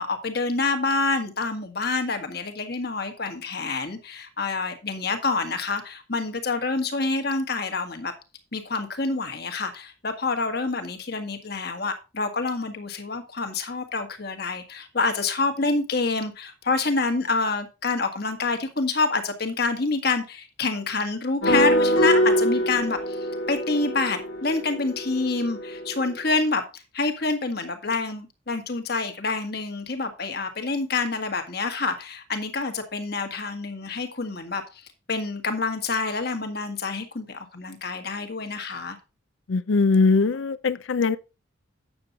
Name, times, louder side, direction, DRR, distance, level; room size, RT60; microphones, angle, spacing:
voice 1, 0.0-8.1 8.5-39.0, left 3 dB, 50° left, 1.6 m, -27 dB
sound 1, 21.4-26.1, equal, 90° left, 1.6 m, -24 dB
voice 2, 39.5-41.2, left 4 dB, 70° left, 0.5 m, -21 dB
8.7 x 7.0 x 4.0 m
head